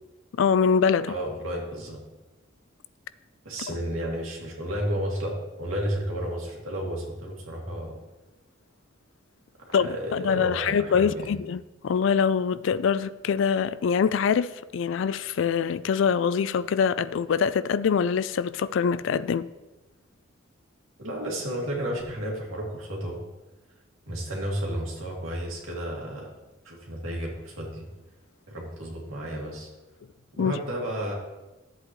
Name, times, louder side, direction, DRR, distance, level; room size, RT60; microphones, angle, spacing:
voice 1, 0.4-1.1 3.7-3.8 9.7-19.5 30.4-30.5, left 6 dB, 65° left, 0.3 m, -24 dB
voice 2, 1.1-2.0 3.4-8.0 9.7-11.3 21.0-23.2 24.1-26.3 26.6-27.9 28.5-29.7 30.4-31.1, equal, 80° right, 2.2 m, -32 dB
12.0 x 7.8 x 3.1 m
head